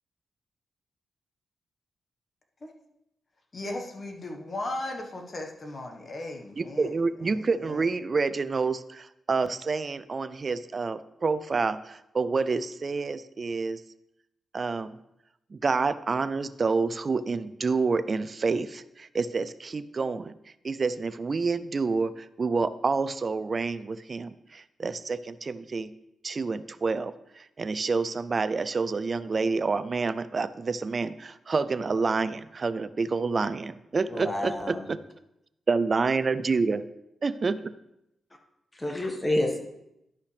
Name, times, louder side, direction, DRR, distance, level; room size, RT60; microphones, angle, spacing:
voice 1, 3.5-7.9, left 2 dB, 45° left, 1.4 m, -37 dB
voice 2, 6.6-13.8 14.5-15.0 15.5-20.3 20.6-25.9 26.2-35.0 35.7-36.8 37.2-37.6, right 4 dB, 45° right, 0.4 m, -28 dB
voice 3, 34.1-34.8 38.7-39.6, left 1 dB, 20° left, 1.6 m, -28 dB
11.5 x 5.5 x 3.4 m
cardioid pair, 70°, 0 cm